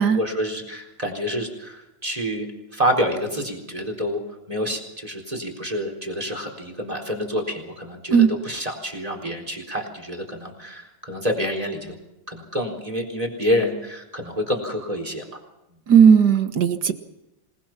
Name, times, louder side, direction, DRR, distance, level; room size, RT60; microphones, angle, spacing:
voice 1, 0.0-4.2 4.5-12.0 12.3-15.4, equal, 15° right, 3 dB, 4.2 m, -28 dB
voice 2, 15.9-16.9, right 7 dB, 55° right, 9 dB, 2.0 m, -15 dB
27.5 x 20.0 x 6.0 m, 0.93 s
omnidirectional pair, 2.1 m